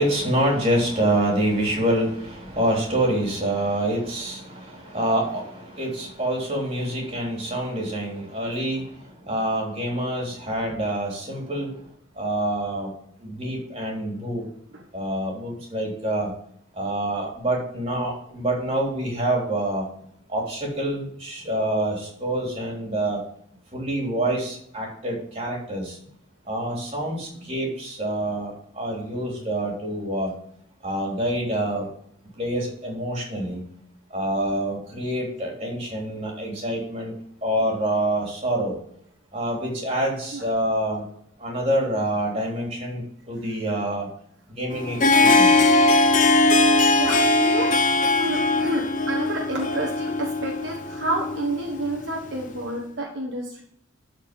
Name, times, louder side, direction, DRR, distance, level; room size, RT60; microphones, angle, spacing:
voice 1, 0.0-11.8 12.2-12.9 13.2-14.5 14.9-16.3 16.7-19.8 20.3-23.2 23.7-26.0 26.5-30.3 30.8-31.9 32.4-33.6 34.1-37.1 37.4-38.8 39.3-41.0 41.4-44.1 44.6-45.7, right 1 dB, 30° right, -1 dB, 3.2 m, -26 dB
Harp, 44.7-52.5, left 2 dB, 40° left, 0.8 m, -20 dB
voice 2, 47.0-47.7 48.2-53.6, right 2 dB, 60° right, 0 dB, 1.2 m, -29 dB
12.0 x 4.6 x 5.2 m, 0.66 s
head